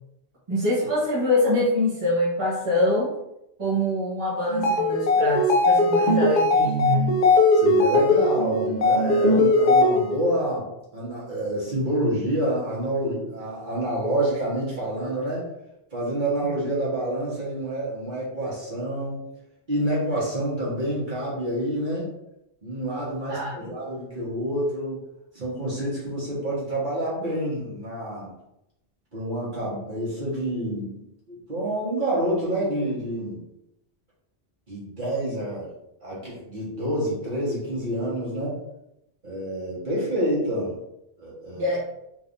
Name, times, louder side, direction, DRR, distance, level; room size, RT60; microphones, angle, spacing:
voice 1, 0.5-3.1 3.6-7.1 23.3-23.5 41.5-41.8, left 1 dB, 30° right, -9 dB, 1.2 m, -24 dB
sound 1, 4.5-10.3, left 2 dB, 50° left, 0.6 m, -19 dB
voice 2, 7.5-15.5 15.9-19.3 19.7-22.1 22.6-25.0 25.3-28.3 29.1-33.5 34.7-35.7 36.0-38.6 39.2-40.8 41.2-41.7, right 1 dB, 45° right, -7 dB, 1.6 m, -28 dB
3.9 x 3.4 x 2.6 m, 0.84 s
omnidirectional pair, 1.1 m